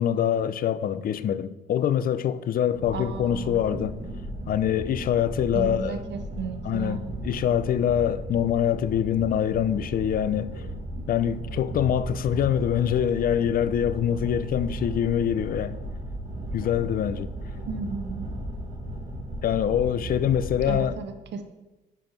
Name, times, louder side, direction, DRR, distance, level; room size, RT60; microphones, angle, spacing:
voice 1, 0.0-4.0 4.5-6.0 6.6-7.0 7.2-10.6 11.1-15.8 16.5-17.3 19.4-21.0, left 9 dB, 45° left, 0.4 m, -24 dB
sound 1, 2.7-20.9, right 1 dB, 40° right, 1.6 m, -35 dB
voice 2, 2.9-3.6 5.5-7.1 17.7-18.2 20.7-21.4, right 5 dB, 60° right, 0.7 m, -34 dB
6.1 x 5.1 x 4.4 m
cardioid pair, 90°, 20 cm